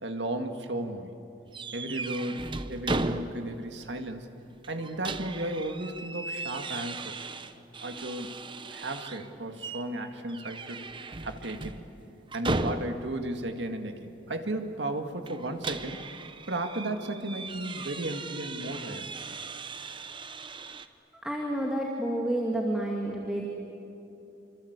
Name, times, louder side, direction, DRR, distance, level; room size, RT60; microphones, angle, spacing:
voice 1, 0.0-1.2 1.7-4.3 4.7-7.3 7.8-8.4 8.7-11.9 12.3-16.0 16.5-19.1, right 1 dB, 70° right, 5 dB, 2.0 m, -34 dB
sound 1, 1.5-3.7 4.0-4.1 4.6-9.3 9.6-9.9 10.3-13.2 15.2-20.9, right 3 dB, 25° right, 0.8 m, -37 dB
voice 2, 21.2-23.5, right 1 dB, 5° right, -1 dB, 2.3 m, -29 dB
26.0 x 25.5 x 8.2 m, 2.9 s
head